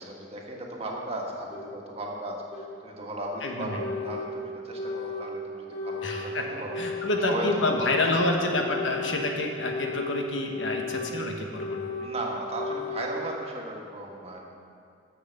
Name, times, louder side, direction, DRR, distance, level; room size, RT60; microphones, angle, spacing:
voice 1, 0.0-7.9 8.2-8.3 12.0-14.4, right 1 dB, 35° right, -1 dB, 1.5 m, -36 dB
sound 1, 1.5-1.6 2.5-2.6 3.5-4.3 4.7-5.3 5.7-6.3 6.7-7.2 7.6-8.2 8.6-9.2 9.6-10.1 10.5-11.1 11.5-12.1 12.5-13.1, left 4 dB, 30° left, 1.7 m, -34 dB
voice 2, 3.4-4.0 6.0-6.5 6.7-11.8, left 2 dB, 85° left, 2 dB, 1.3 m, -28 dB
10.0 x 6.4 x 7.3 m, 2.3 s
head